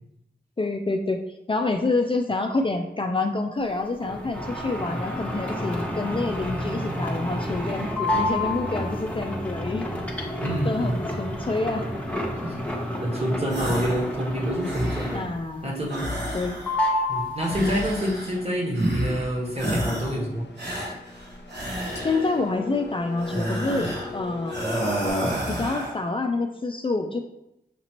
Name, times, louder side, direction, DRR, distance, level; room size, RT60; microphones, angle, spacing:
voice 1, 0.6-1.2 1.5-9.9 10.6-11.9 15.1-15.7 16.3-16.6 22.0-24.6 25.5-27.2, left 3 dB, 30° left, 4 dB, 0.4 m, -27 dB
sound 1, 4.0-15.5 15.8-16.4 16.6-18.0, left 1 dB, 5° left, 0.9 m, -29 dB
voice 2, 10.4-11.0 12.4-12.6 13.0-15.2 15.6-16.0 17.1-20.4, equal, 35° right, -2 dB, 1.4 m, -27 dB
sound 2, 13.5-14.1 14.4-15.3 15.9-16.9 17.4-18.4 18.7-19.3 19.6-20.2 20.6-22.4 23.2-24.1 24.5-26.0, equal, 75° right, 1.1 m, -30 dB
Engine, 17.9-25.1, left 4 dB, 85° left, 0.5 m, -39 dB
5.9 x 2.8 x 2.9 m, 0.85 s
cardioid pair, 45°, 18 cm